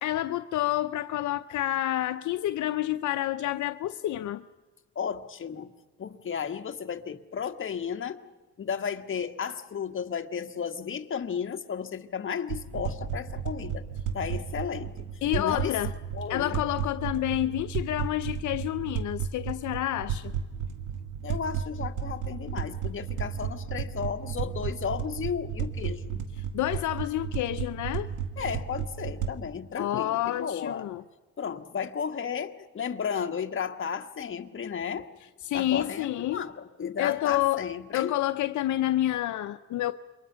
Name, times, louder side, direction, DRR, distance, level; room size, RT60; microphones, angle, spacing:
voice 1, 0.0-4.4 15.2-15.9 16.3-20.3 26.5-28.1 29.8-31.0 35.5-36.4 37.0-39.9, left 14 dB, 75° left, 0.7 m, -29 dB
voice 2, 4.9-5.7 6.0-8.2 8.6-13.9 14.1-15.7 16.1-16.6 21.2-26.2 28.4-30.9 31.4-35.1 35.5-38.1, left 7 dB, 40° left, 1.5 m, -34 dB
sound 1, 12.5-29.3, right 7 dB, 85° right, 1.8 m, -34 dB
28.0 x 23.5 x 5.7 m
cardioid pair, 90°, 30 cm